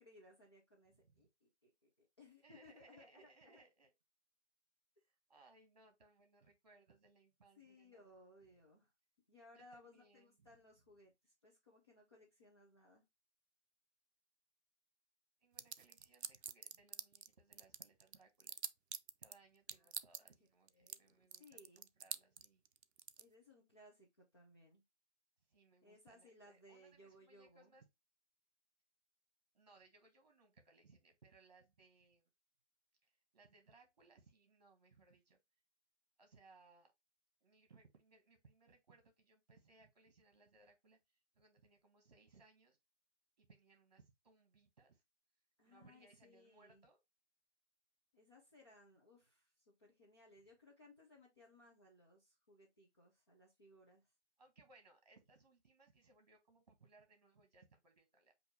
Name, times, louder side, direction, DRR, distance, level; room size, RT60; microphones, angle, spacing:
voice 1, 0.0-3.6 7.6-8.9 9.3-13.0 19.7-19.9 20.2-20.3 20.7-21.9 23.2-24.8 25.8-27.8 45.6-46.8 48.1-54.1, left 1 dB, 25° left, 0.8 m, -64 dB
voice 2, 2.4-3.9 5.3-8.1 9.5-10.5 15.4-18.6 19.2-22.6 25.5-27.9 29.5-32.3 33.0-35.4 36.2-36.9 37.4-42.8 43.4-45.0 45.6-47.0 54.4-58.3, right 3 dB, 35° right, 1.4 m, -67 dB
sound 1, 15.6-17.3 17.5-19.3 19.7-20.3 20.7-21.0 21.3-23.2, right 7 dB, 65° right, 0.5 m, -45 dB
6.3 x 2.8 x 2.8 m
hypercardioid pair, 170°, 35 cm